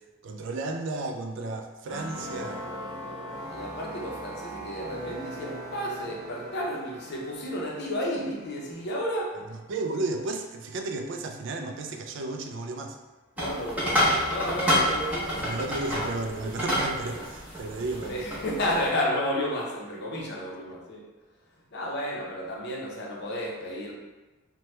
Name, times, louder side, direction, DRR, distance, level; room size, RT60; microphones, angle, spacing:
voice 1, 0.2-2.6 9.7-13.0 15.4-18.2, right 2 dB, 60° right, 4 dB, 0.3 m, -33 dB
sound 1, 1.9-10.5, right 1 dB, 30° right, 1.0 m, -42 dB
voice 2, 2.1-9.4 13.4-15.6 18.1-21.1 21.7-23.9, equal, 50° left, -3 dB, 0.6 m, -32 dB
sound 2, 13.4-18.9, equal, 5° right, 0.7 m, -28 dB
3.0 x 2.1 x 3.1 m, 1.1 s
head